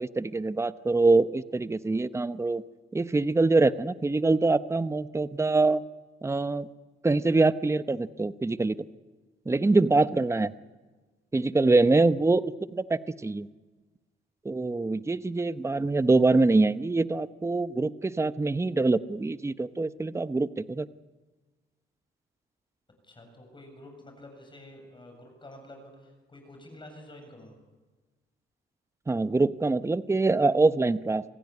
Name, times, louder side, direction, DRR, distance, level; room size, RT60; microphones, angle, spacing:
voice 1, 0.0-2.6 2.9-5.8 6.2-6.7 7.0-8.8 9.5-10.5 11.3-13.5 14.4-20.9 29.1-31.2, right 3 dB, 15° right, 13 dB, 0.8 m, -24 dB
voice 2, 23.0-27.5, left 1 dB, 25° left, 4 dB, 7.3 m, -49 dB
27.0 x 16.0 x 9.6 m, 1.3 s
cardioid pair, 90°, 20 cm